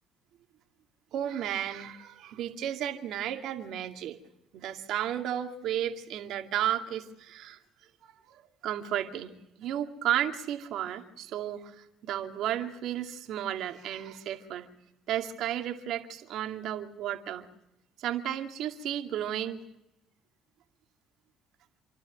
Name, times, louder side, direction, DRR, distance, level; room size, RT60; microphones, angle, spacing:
voice 1, 1.1-4.2 4.5-7.6 8.0-14.7 15.1-17.5 18.0-19.6, right 11 dB, 70° right, 5 dB, 2.3 m, -33 dB
28.0 x 12.0 x 9.2 m, 0.88 s
supercardioid pair, 70°, 0 cm